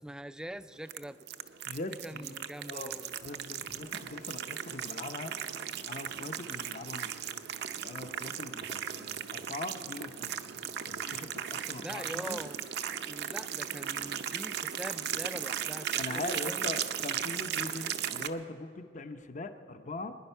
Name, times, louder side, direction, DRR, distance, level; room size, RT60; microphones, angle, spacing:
voice 1, 0.0-1.2 1.9-3.2 3.6-3.8 11.8-12.6 13.0-16.7, right 1 dB, 5° right, 13 dB, 0.3 m, -43 dB
sound 1, 0.9-18.3, right 9 dB, 60° right, 0.6 m, -37 dB
voice 2, 1.7-2.4 2.7-5.3 5.9-7.1 7.8-10.5 10.8-12.4 16.0-20.2, left 2 dB, 40° left, 9 dB, 0.7 m, -41 dB
24.0 x 10.5 x 5.6 m, 2.9 s
head